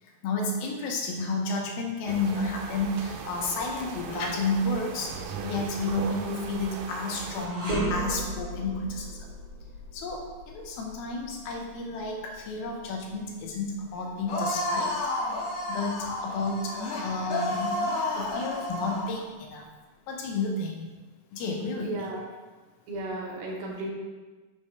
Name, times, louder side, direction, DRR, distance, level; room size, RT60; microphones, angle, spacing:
voice 1, 0.0-9.3 9.9-17.8 18.1-19.7 20.1-20.9 21.3-22.1, left 3 dB, 80° left, 1 dB, 2.5 m, -31 dB
sound 1, 2.1-7.5, right 5 dB, 85° right, 2.7 m, -38 dB
sound 2, 7.4-16.6 17.0-17.2 18.1-18.9, right 1 dB, 50° right, 1.0 m, -37 dB
sound 3, 14.3-19.2, left 2 dB, 60° left, 2.0 m, -31 dB
voice 2, 21.8-22.2 22.9-23.9, right 2 dB, 70° right, -1 dB, 2.5 m, -34 dB
6.4 x 3.2 x 5.6 m, 1.3 s
omnidirectional pair, 4.6 m